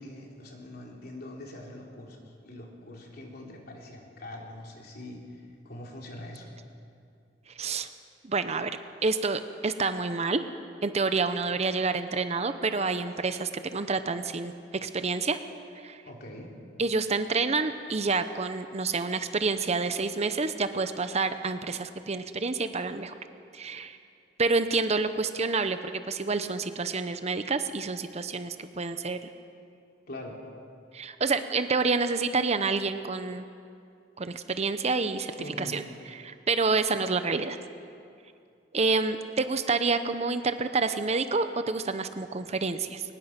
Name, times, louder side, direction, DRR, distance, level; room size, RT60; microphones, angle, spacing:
voice 1, 0.0-5.2 5.6-6.5 16.1-16.5 30.1-30.4 35.4-35.8, left 1 dB, 55° left, 0 dB, 3.4 m, -43 dB
voice 2, 7.6-7.9 8.2-8.7 9.0-10.4 10.8-14.5 14.8-15.4 15.8-16.0 16.8-23.1 23.5-24.0 24.4-29.2 30.9-33.4 34.2-35.3 35.6-35.8 36.1-37.6 38.7-43.0, right 4 dB, 35° right, 10 dB, 0.8 m, -28 dB
22.5 x 20.0 x 5.9 m, 2.4 s
head